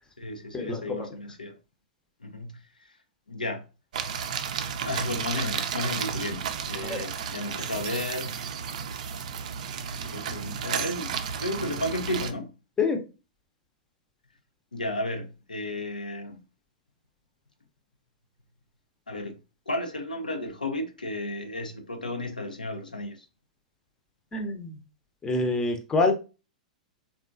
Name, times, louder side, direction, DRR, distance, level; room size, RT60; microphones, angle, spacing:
voice 1, 0.2-1.6 2.2-2.6 3.3-3.6 4.8-8.4 10.0-12.5 14.7-16.4 19.1-19.4 19.7-23.3, left 1 dB, 90° left, 0.5 m, -33 dB
sound 1, 3.9-12.3, right 7 dB, 60° right, 0.4 m, -33 dB
voice 2, 24.3-24.7 25.2-26.1, left 3 dB, 15° left, 0.6 m, -25 dB
3.6 x 2.3 x 2.5 m
figure-of-eight pair, 105°, 4 cm